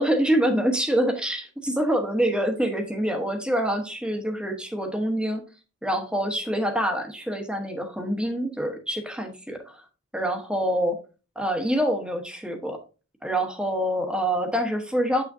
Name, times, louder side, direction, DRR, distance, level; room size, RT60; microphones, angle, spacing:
voice 1, 0.0-5.4 5.8-9.8 10.1-11.0 11.3-12.8 13.2-15.2, equal, 5° right, 4 dB, 1.1 m, -26 dB
8.3 x 6.0 x 2.7 m, 0.34 s
head